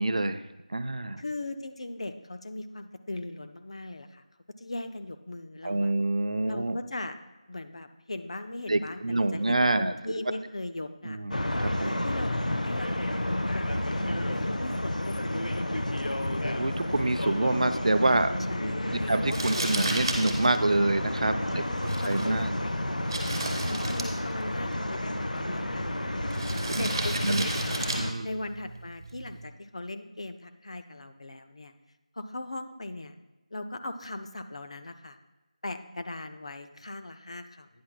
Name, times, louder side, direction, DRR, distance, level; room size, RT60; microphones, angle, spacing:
voice 1, 0.0-1.2 5.6-6.8 8.7-9.9 11.0-12.0 16.6-18.3 18.9-22.6 26.4-26.9 27.2-27.5 28.0-28.3, right 2 dB, 60° right, 11 dB, 0.5 m, -27 dB
voice 2, 1.2-4.2 4.6-5.9 6.5-7.2 7.5-11.2 11.8-13.1 13.5-16.0 18.5-19.3 21.5-27.9 28.2-31.7 32.1-33.1 33.5-35.2 35.6-37.7, left 2 dB, 55° left, 8 dB, 0.6 m, -39 dB
sound 1, 11.3-28.1, left 1 dB, 85° left, 0.7 m, -31 dB
Crumpling crinkling, 19.3-29.4, right 2 dB, 35° right, 1.5 m, -36 dB
11.5 x 9.5 x 2.2 m, 1.1 s
figure-of-eight pair, 170°, 4 cm